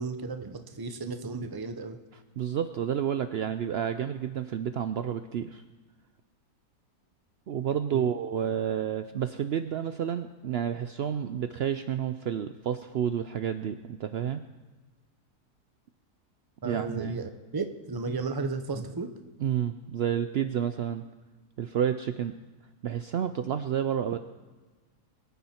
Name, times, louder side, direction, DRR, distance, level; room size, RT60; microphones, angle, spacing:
voice 1, 0.0-2.0 7.9-8.0 16.6-19.1, right 4 dB, 25° right, 8 dB, 0.5 m, -34 dB
voice 2, 2.4-5.6 7.5-14.4 16.6-17.2 19.4-21.0 21.6-22.3 22.8-24.2, right 9 dB, 85° right, 10 dB, 0.5 m, -30 dB
22.5 x 9.2 x 4.4 m, 1.3 s
omnidirectional pair, 1.7 m